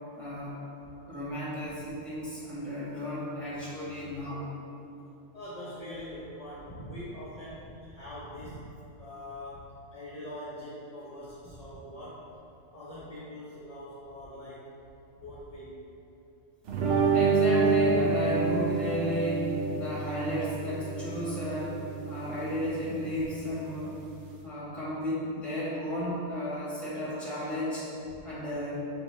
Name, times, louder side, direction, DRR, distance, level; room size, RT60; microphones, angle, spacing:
voice 1, 0.1-0.6 1.1-4.5 17.1-23.9 24.4-27.9 28.2-28.8, equal, ahead, -10 dB, 1.4 m, -33 dB
voice 2, 5.3-8.7 9.0-12.3 12.7-14.7 15.1-15.7, left 1 dB, 40° left, -9 dB, 0.7 m, -43 dB
sound 1, 16.7-24.4, right 4 dB, 75° right, 0.9 m, -28 dB
6.3 x 2.7 x 3.0 m, 2.9 s
omnidirectional pair, 1.3 m